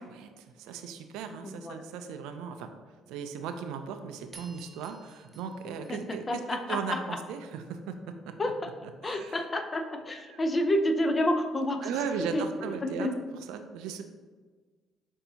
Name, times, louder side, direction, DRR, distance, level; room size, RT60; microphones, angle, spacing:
voice 1, 0.0-2.7 3.1-8.3 9.0-9.4 10.3-10.4 11.8-13.1 13.5-14.0, right 6 dB, 85° right, 7 dB, 0.3 m, -37 dB
voice 2, 1.4-1.8 5.6-7.2 8.4-8.7 9.0-11.9 12.3-13.2, left 1 dB, 30° left, 6 dB, 0.5 m, -30 dB
sound 1, 4.3-6.9, right 3 dB, 30° right, 0.7 m, -53 dB
6.7 x 2.7 x 2.7 m, 1.4 s
supercardioid pair, 80°, 0 cm